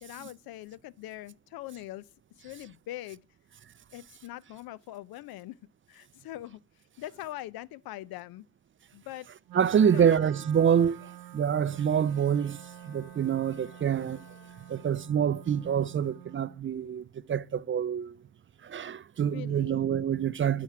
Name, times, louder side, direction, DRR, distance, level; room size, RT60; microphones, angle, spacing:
voice 1, 0.0-2.0 2.4-3.2 3.9-5.6 5.9-6.6 7.0-8.4 8.9-9.3 9.8-10.1 19.2-19.8, left 15 dB, 75° left, 0.5 m, -42 dB
voice 2, 9.5-14.2 14.7-18.2 18.6-20.6, right 8 dB, 35° right, 0.4 m, -26 dB
Wind instrument woodwind instrument, 9.5-16.6, right 13 dB, 70° right, 0.9 m, -47 dB
Bowed string instrument, 11.8-15.3, left 4 dB, 45° left, 3.3 m, -58 dB
9.7 x 5.9 x 4.7 m
supercardioid pair, 55°, 37 cm